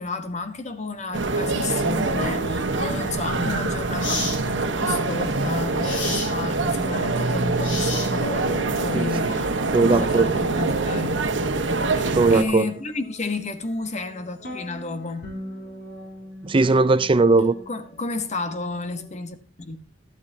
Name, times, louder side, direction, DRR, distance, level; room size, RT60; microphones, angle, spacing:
voice 1, 0.0-11.2 12.0-15.3 17.7-19.8, left 3 dB, 40° left, 1.2 m, -31 dB
sound 1, 1.1-19.1, equal, 55° left, 3.1 m, -42 dB
sound 2, 1.1-12.4, right 3 dB, 70° right, 1.2 m, -25 dB
sound 3, 3.1-3.3 4.0-4.4 5.8-6.3 7.6-8.4, left 2 dB, 75° left, 4.7 m, -30 dB
voice 2, 8.9-9.3 9.7-10.3 12.1-12.7 16.4-17.6, right 3 dB, 30° right, 0.5 m, -19 dB
12.0 x 12.0 x 2.8 m
head